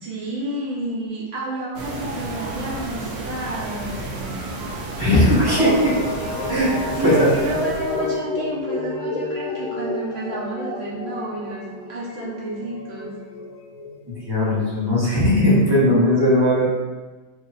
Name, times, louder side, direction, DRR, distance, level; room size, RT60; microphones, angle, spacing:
voice 1, 0.0-4.4 6.9-13.1, right 1 dB, 45° right, -6 dB, 1.1 m, -30 dB
sound 1, 1.7-8.2, right 2 dB, 70° right, 0.6 m, -32 dB
voice 2, 5.0-6.0 6.5-6.7 7.0-7.3 14.1-16.7, left 1 dB, 20° right, -7 dB, 0.8 m, -18 dB
sound 2, 5.5-15.4, left 2 dB, 60° left, 0.9 m, -30 dB
3.0 x 2.7 x 4.0 m, 1.2 s
omnidirectional pair, 1.7 m